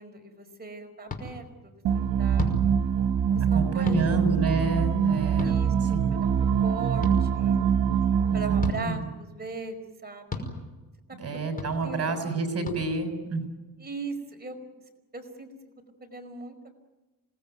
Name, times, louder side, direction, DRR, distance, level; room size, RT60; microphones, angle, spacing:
voice 1, 0.0-2.5 3.3-4.7 5.4-6.3 6.6-7.6 8.3-9.8 10.0-10.4 11.8-12.2 13.8-14.6 15.1-15.5 16.0-16.6, right 4 dB, 25° right, 4 dB, 5.0 m, -38 dB
sound 1, 1.1-1.2 2.4-2.6 3.9-4.0 5.4-5.6 7.0-7.1 8.6-8.8 10.3-10.5 11.6-11.7 12.6-12.8, left 3 dB, 25° left, 5.5 m, -32 dB
sound 2, 1.8-8.7, right 7 dB, 85° right, 1.3 m, -24 dB
voice 2, 3.5-6.2 8.3-9.1 11.2-13.5, right 3 dB, 45° right, 6 dB, 6.8 m, -29 dB
27.0 x 19.5 x 9.4 m, 1.1 s
cardioid pair, 105°, 35 cm